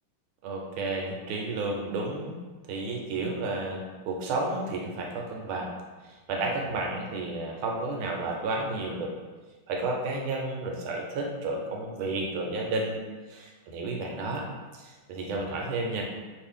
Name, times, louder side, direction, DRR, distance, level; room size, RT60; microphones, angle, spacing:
voice 1, 0.4-2.4 2.7-5.7 6.0-9.1 9.7-13.0 13.3-14.4 14.7-16.0, right 2 dB, 90° right, 0 dB, 1.5 m, -32 dB
3.3 x 2.5 x 3.5 m, 1.3 s
omnidirectional pair, 2.2 m